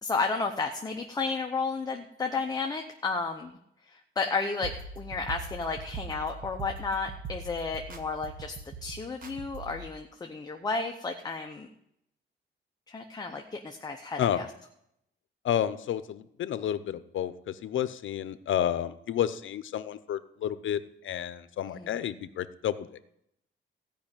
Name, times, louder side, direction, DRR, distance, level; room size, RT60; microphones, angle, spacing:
voice 1, 0.0-3.6 3.8-8.6 8.8-11.7 12.9-14.5 21.7-21.9, left 4 dB, 20° left, 3 dB, 0.7 m, -32 dB
sound 1, 4.6-9.9, right 4 dB, 45° right, 1.2 m, -41 dB
voice 2, 15.4-22.9, left 10 dB, 75° left, 14 dB, 0.7 m, -31 dB
15.5 x 5.3 x 8.9 m, 0.78 s
wide cardioid pair, 175°, 20 cm